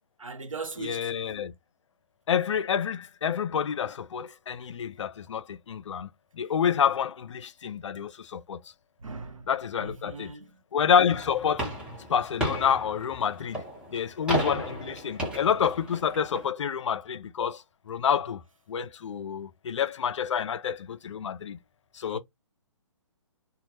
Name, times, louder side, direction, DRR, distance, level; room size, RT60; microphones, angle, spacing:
voice 1, 0.2-1.1 9.0-9.5 9.8-10.6 22.1-22.2, right 4 dB, 90° right, 0.7 m, -39 dB
voice 2, 0.8-1.5 2.3-6.1 6.3-8.6 9.5-10.3 10.7-11.7 12.1-13.6 13.9-18.4 18.7-21.6 21.9-22.2, left 8 dB, 65° left, 0.4 m, -28 dB
sound 1, 11.1-16.5, right 1 dB, 5° right, 0.8 m, -34 dB
2.2 x 2.0 x 2.8 m
figure-of-eight pair, 135°, 16 cm